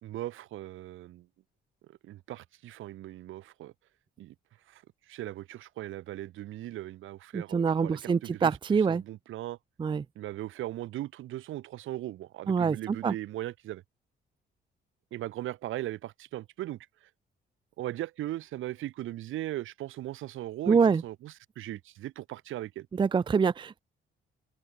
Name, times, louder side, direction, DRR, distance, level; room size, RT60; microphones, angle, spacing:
voice 1, 0.0-1.3 1.9-3.7 4.2-4.3 4.7-4.8 5.1-9.6 10.2-13.8 15.1-16.8 17.8-22.9, right 14 dB, 85° right, 4.4 m, -38 dB
voice 2, 7.3-9.0 9.8-10.0 12.5-13.1 20.7-21.0 23.0-23.8, right 5 dB, 25° right, 0.5 m, -25 dB
open air
cardioid pair, 90°, 20 cm